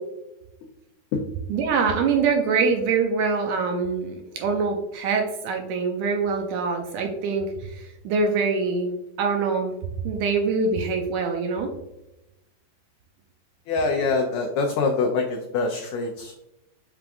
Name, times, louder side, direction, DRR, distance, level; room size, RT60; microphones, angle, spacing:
voice 1, 1.5-8.9 9.2-9.7 10.0-11.7, right 4 dB, 80° right, 3 dB, 1.8 m, -24 dB
voice 2, 13.7-16.4, left 4 dB, 90° left, 3 dB, 1.6 m, -25 dB
5.8 x 3.5 x 2.4 m, 0.91 s
omnidirectional pair, 3.7 m